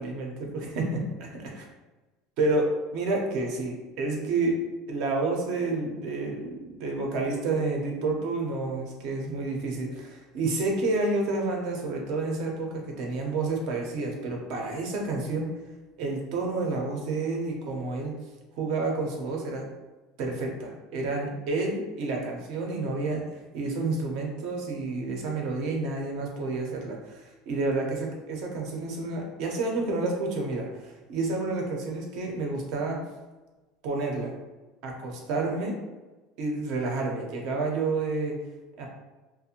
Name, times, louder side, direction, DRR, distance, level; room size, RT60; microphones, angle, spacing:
voice 1, 0.0-1.5 2.4-4.6 4.9-15.5 16.0-18.2 18.6-19.6 20.2-23.2 23.5-33.0 33.8-34.4 34.8-35.8 36.4-38.4 38.8-38.9, right 3 dB, 60° right, 0 dB, 0.6 m, -29 dB
2.5 x 2.0 x 2.8 m, 1.2 s
cardioid pair, 150°, 0 cm